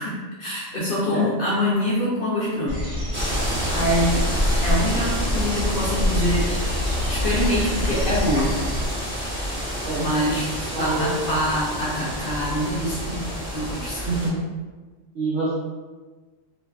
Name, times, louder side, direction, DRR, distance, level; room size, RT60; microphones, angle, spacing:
voice 1, 0.0-2.8 3.7-4.2 4.6-6.5 7.1-8.5 10.0-14.1, equal, 60° left, -6 dB, 0.6 m, -25 dB
sound 1, 2.7-8.9, left 1 dB, 55° right, 1.3 m, -25 dB
sound 2, 3.1-14.3, equal, 10° right, 0.8 m, -29 dB
voice 2, 10.7-11.1 14.1-14.4 15.1-15.5, right 3 dB, 75° right, -8 dB, 0.9 m, -26 dB
2.5 x 2.2 x 2.3 m, 1.3 s
omnidirectional pair, 1.2 m